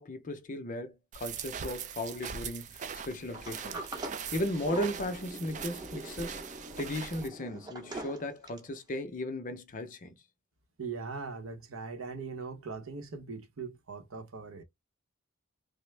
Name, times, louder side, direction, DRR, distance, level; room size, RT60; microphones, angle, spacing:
voice 1, 0.0-3.8 4.3-6.4 6.8-10.1, left 1 dB, 40° left, 0.6 m, -36 dB
sound 1, 1.1-7.3, right 7 dB, 35° right, 0.4 m, -41 dB
Sliding door, 3.3-8.8, right 2 dB, 20° right, 0.8 m, -43 dB
voice 2, 10.8-14.6, right 4 dB, 70° right, 0.8 m, -40 dB
3.3 x 2.0 x 3.2 m
head